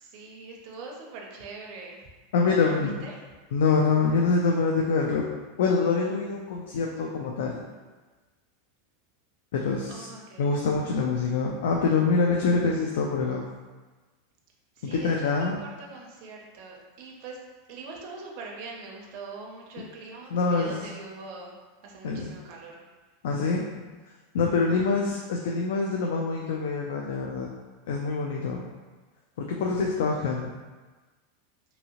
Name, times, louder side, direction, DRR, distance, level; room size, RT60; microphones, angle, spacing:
voice 1, 0.0-2.0 2.6-3.2 9.9-10.6 14.8-17.4 17.7-21.5 21.8-22.8, right 3 dB, 40° right, -1 dB, 0.5 m, -43 dB
voice 2, 2.3-2.9 3.5-5.2 5.6-7.6 9.5-10.1 10.4-13.4 14.8-15.6 20.3-20.9 22.0-22.3 23.2-23.9 24.3-27.5 27.9-28.7 29.4-30.5, left 4 dB, 75° left, 0 dB, 0.3 m, -25 dB
2.7 x 2.7 x 2.8 m, 1.3 s
supercardioid pair, 170°, 0 cm